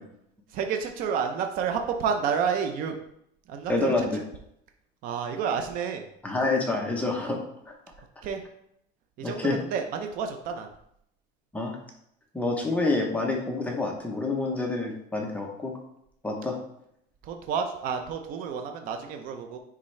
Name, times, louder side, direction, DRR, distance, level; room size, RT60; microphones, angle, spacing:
voice 1, 0.5-3.0 3.5-4.1 5.0-6.0 8.2-8.4 9.2-10.7 17.2-19.6, right 6 dB, 45° right, 5 dB, 0.6 m, -30 dB
voice 2, 3.7-4.2 6.2-7.4 7.7-7.8 9.2-9.6 11.5-11.8 12.3-15.7 16.2-16.6, left 2 dB, 5° left, 0 dB, 0.8 m, -27 dB
9.7 x 3.6 x 3.2 m, 0.74 s
cardioid pair, 165°, 20 cm